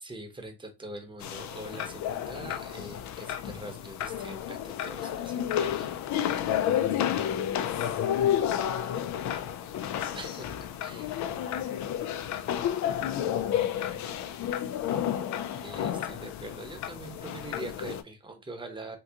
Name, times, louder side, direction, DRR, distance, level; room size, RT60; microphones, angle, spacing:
voice 1, 0.0-5.9 10.1-11.1 15.6-19.0, right 2 dB, 15° right, 5 dB, 1.0 m, -43 dB
sound 1, 1.2-18.0, left 10 dB, 50° left, 0.5 m, -31 dB
voice 2, 6.4-7.0 7.3-9.8 10.9-14.7, left 7 dB, 85° left, 7 dB, 0.9 m, -48 dB
3.6 x 2.3 x 2.8 m, 0.26 s
supercardioid pair, 80°, 37 cm